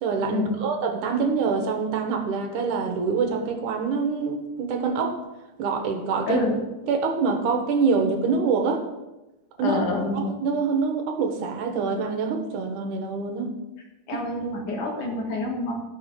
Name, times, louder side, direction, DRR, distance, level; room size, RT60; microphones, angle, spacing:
voice 1, 0.0-5.2 5.6-6.4 6.9-8.8 9.6-9.8 10.1-13.5 14.1-14.2, right 5 dB, 75° right, 4 dB, 2.5 m, -25 dB
voice 2, 6.3-6.6 9.6-10.3 14.1-15.7, left 2 dB, 65° left, -1 dB, 3.2 m, -27 dB
15.0 x 6.5 x 3.7 m, 1.0 s
omnidirectional pair, 3.8 m